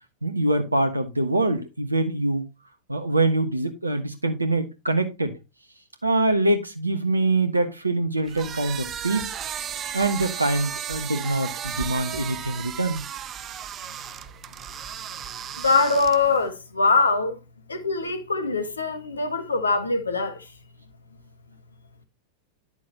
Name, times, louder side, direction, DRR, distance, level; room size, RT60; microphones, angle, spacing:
voice 1, 0.2-2.4 2.9-5.3 6.0-9.3 9.9-13.0, right 2 dB, 80° right, 1.4 m, -24 dB
sound 1, 8.3-16.5, right 9 dB, 30° right, 0.7 m, -35 dB
voice 2, 15.6-17.4 17.7-20.4, left 3 dB, 75° left, 1.6 m, -23 dB
11.0 x 6.9 x 2.9 m
figure-of-eight pair, 90°, 0 cm